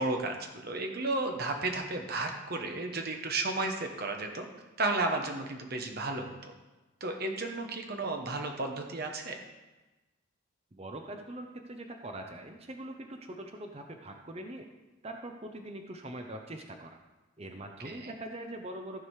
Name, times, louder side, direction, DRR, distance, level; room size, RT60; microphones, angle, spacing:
voice 1, 0.0-4.5 4.8-6.5 7.0-9.4 17.8-18.1, right 2 dB, 45° right, 3 dB, 1.1 m, -33 dB
voice 2, 10.7-14.7 15.0-17.0 17.4-19.0, right 1 dB, 30° right, 4 dB, 0.6 m, -42 dB
14.5 x 4.9 x 4.8 m, 1.1 s
head